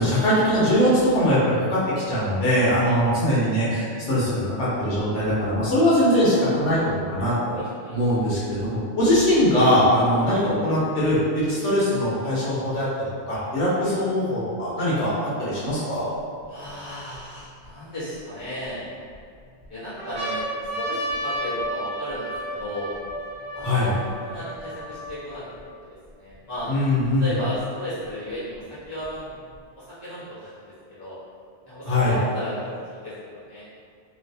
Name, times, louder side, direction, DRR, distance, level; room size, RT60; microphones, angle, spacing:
voice 1, 0.0-1.8 2.1-7.6 7.9-15.1 15.4-16.1 23.6-23.9 26.7-27.3 31.9-32.1, equal, 85° left, -9 dB, 1.3 m, -21 dB
voice 2, 7.5-8.0 16.5-18.8 19.7-22.9 23.5-25.4 25.8-26.7 27.2-29.3 29.8-30.7 31.0-31.2 31.6-33.6, equal, 35° left, -13 dB, 1.3 m, -35 dB
sound 1, 16.4-17.7 18.4-19.2 19.6-19.7 20.0-25.6 26.3-26.4 26.6-27.6 28.5-29.6, right 1 dB, 40° right, 1.2 m, -33 dB
3.1 x 2.3 x 2.7 m, 2.2 s
omnidirectional pair, 1.2 m